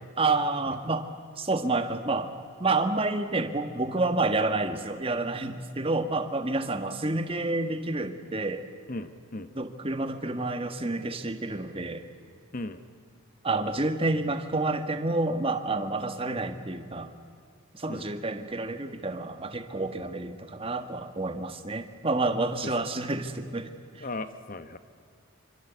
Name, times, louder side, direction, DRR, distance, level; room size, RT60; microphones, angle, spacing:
voice 1, 0.2-1.1 1.4-2.3 2.6-8.6 9.5-12.1 13.4-17.1 17.7-24.0, right 2 dB, 25° right, 8 dB, 1.5 m, -29 dB
voice 2, 8.9-9.5 12.5-12.8 17.9-18.1 22.6-22.7 24.0-24.8, left 2 dB, 40° left, 11 dB, 1.0 m, -36 dB
26.0 x 26.0 x 8.2 m, 2.1 s
head